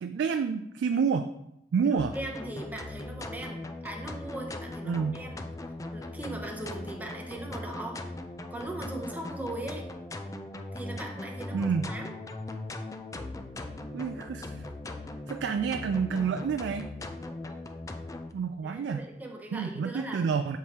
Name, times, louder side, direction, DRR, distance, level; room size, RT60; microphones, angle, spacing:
voice 1, 0.0-1.3 1.7-2.1 4.8-5.2 11.5-11.9 13.9-14.6 15.3-16.9 18.3-19.0 19.5-20.6, right 6 dB, 80° right, 8 dB, 0.3 m, -29 dB
voice 2, 1.8-5.5 5.9-8.0 8.5-9.9 10.7-12.2 17.2-17.6 18.6-20.2, right 1 dB, 10° right, 1 dB, 0.8 m, -39 dB
sound 1, 2.0-18.3, left 2 dB, 20° left, 0.4 m, -39 dB
7.2 x 4.6 x 2.9 m, 0.84 s
head